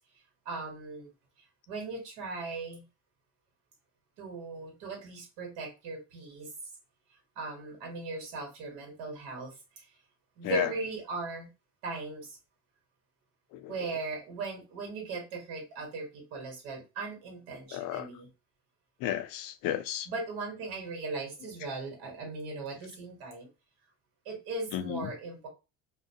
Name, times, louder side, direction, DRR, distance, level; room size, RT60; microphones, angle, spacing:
voice 1, 0.4-1.1 1.7-2.8 4.2-6.5 7.1-9.9 10.4-11.5 11.8-12.4 13.7-18.3 20.1-23.5 24.2-25.5, right 3 dB, 90° right, 1.1 m, -38 dB
voice 2, 17.7-18.1 19.0-20.1 24.7-25.1, left 12 dB, 75° left, 0.5 m, -33 dB
2.5 x 2.0 x 2.6 m
supercardioid pair, 90°, 34 cm